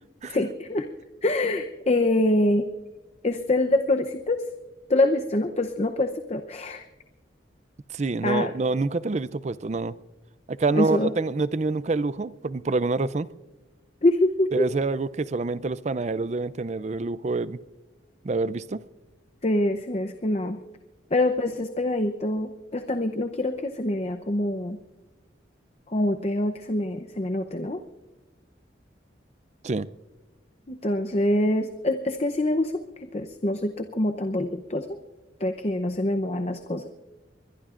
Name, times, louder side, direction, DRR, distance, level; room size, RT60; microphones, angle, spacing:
voice 1, 0.3-0.9 1.2-2.7 3.2-4.4 4.9-6.9 8.2-8.5 10.7-11.1 14.0-14.7 19.4-20.6 21.1-24.8 25.9-27.8 30.7-34.9 35.4-36.8, left 1 dB, 35° left, 0.7 m, -25 dB
voice 2, 7.9-10.0 10.5-13.3 14.5-17.6 18.2-18.8 29.6-29.9, right 3 dB, 35° right, 0.4 m, -27 dB
23.5 x 21.5 x 2.5 m
head